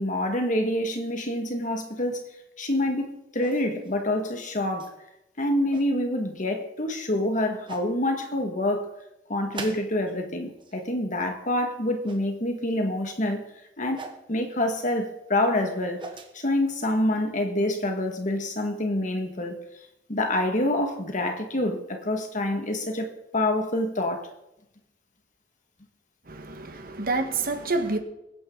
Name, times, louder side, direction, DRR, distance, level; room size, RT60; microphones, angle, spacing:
voice 1, 0.0-2.2 2.6-4.9 5.4-8.9 9.3-13.4 13.8-14.0 14.3-16.0 16.3-19.5 20.1-23.1 23.3-24.3, left 1 dB, 45° left, 2.0 m, -26 dB
sound 1, 3.4-3.9 4.8-4.9 5.5-5.9 7.0-7.1 7.7-7.9 9.5-10.2 10.5-10.9 12.0-12.3 13.9-14.2 15.6-16.3, right 3 dB, 30° right, 1.6 m, -41 dB
voice 2, 26.3-28.0, right 3 dB, 55° right, 1.6 m, -28 dB
21.5 x 9.9 x 4.0 m
head